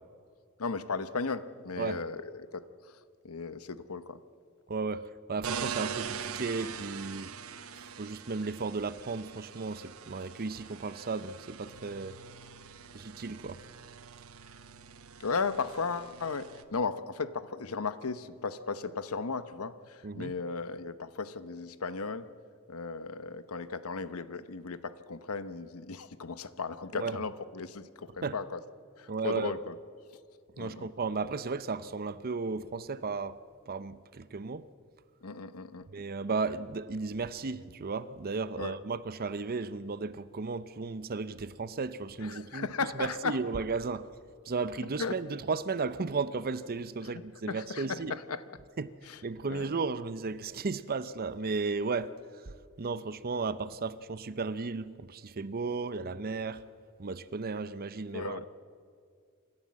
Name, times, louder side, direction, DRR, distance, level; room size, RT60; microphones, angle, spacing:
voice 1, 0.6-2.9 3.2-4.2 15.2-22.3 22.7-28.6 29.0-29.8 30.6-30.9 35.2-35.9 38.6-38.8 42.2-43.4 45.0-45.2 47.5-48.4 49.1-49.2 49.4-49.7 58.1-58.5, left 4 dB, 85° left, 0.9 m, -36 dB
voice 2, 4.7-7.3 7.7-12.1 12.9-13.6 20.0-20.3 26.9-27.2 28.2-28.3 29.1-29.5 30.6-33.4 33.7-34.7 35.9-42.7 42.9-44.1 44.4-48.1 48.8-48.9 49.2-52.1 52.4-56.6 57.0-58.4, right 4 dB, 45° right, 0.7 m, -34 dB
sound 1, 5.4-16.6, right 7 dB, 70° right, 1.0 m, -43 dB
27.0 x 13.5 x 7.5 m
head